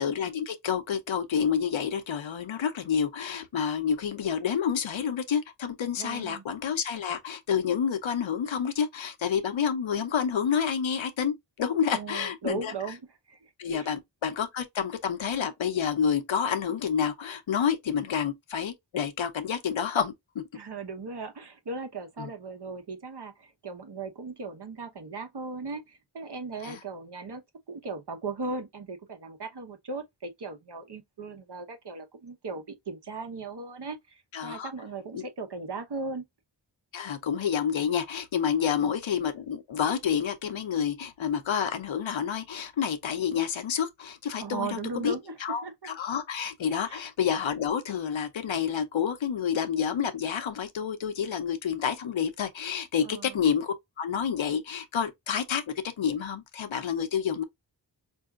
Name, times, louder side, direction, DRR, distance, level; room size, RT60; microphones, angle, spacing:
voice 1, 0.0-12.7 13.6-20.4 22.2-22.3 26.6-26.8 34.3-34.7 35.1-35.2 36.9-45.1 45.4-57.4, left 7 dB, 85° left, 0.7 m, -29 dB
voice 2, 5.9-6.4 11.9-13.0 13.3-14.0 20.5-27.4 27.7-36.2 38.8-38.9 44.4-45.3 45.6-45.7 46.8-47.0 53.0-53.4, right 4 dB, 60° right, 0.9 m, -38 dB
4.6 x 2.7 x 2.3 m
wide cardioid pair, 70°, 45 cm